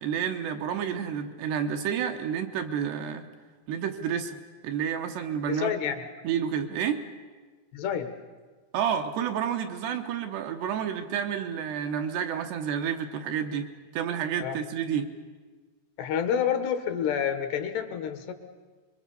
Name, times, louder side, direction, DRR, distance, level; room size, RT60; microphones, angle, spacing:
voice 1, 0.0-3.3 3.7-5.7 6.2-7.0 8.7-15.1, right 8 dB, 75° right, 5 dB, 3.1 m, -30 dB
voice 2, 5.5-6.0 7.7-8.1 14.4-14.6 16.0-18.3, left 8 dB, 70° left, 8 dB, 3.2 m, -28 dB
25.5 x 22.5 x 7.0 m, 1.4 s
omnidirectional pair, 5.3 m